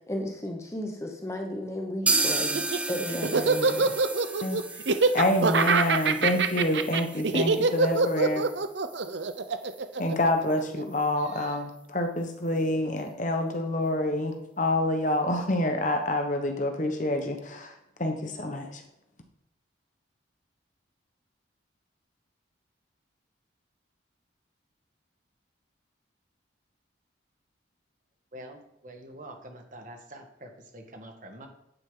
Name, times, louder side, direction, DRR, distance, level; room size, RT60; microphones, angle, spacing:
voice 1, 0.1-2.5 2.9-3.9, left 1 dB, 15° left, 3 dB, 1.0 m, -34 dB
sound 1, 2.1-9.8 10.1-10.2 10.5-10.6 11.0-11.1, right 2 dB, 5° right, 0.6 m, -33 dB
Laughter, 2.4-10.8, right 4 dB, 65° right, 0.7 m, -24 dB
voice 2, 5.1-8.5 10.0-17.7 18.0-18.8, left 1 dB, 40° left, 5 dB, 1.3 m, -27 dB
voice 3, 28.3-31.5, right 1 dB, 40° right, 3 dB, 1.6 m, -45 dB
9.5 x 8.9 x 3.9 m, 0.85 s
head